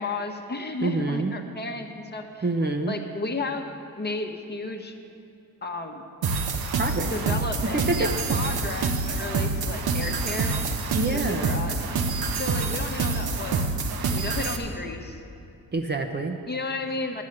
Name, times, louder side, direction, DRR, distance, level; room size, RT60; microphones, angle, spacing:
voice 1, 0.0-2.5 2.9-3.7 4.0-5.0 5.6-6.0 7.0-10.6 11.1-11.9 12.3-13.8 14.1-15.2 16.5-17.2, left 3 dB, 30° left, 4 dB, 1.1 m, -33 dB
voice 2, 0.8-1.3 2.4-3.0 6.7-7.4 7.7-8.1 10.9-11.7 15.7-16.4, right 2 dB, 30° right, 5 dB, 0.8 m, -27 dB
sound 1, 6.2-14.6, right 4 dB, 80° right, 1.0 m, -27 dB
11.0 x 7.2 x 7.9 m, 2.6 s
cardioid pair, 90°, 36 cm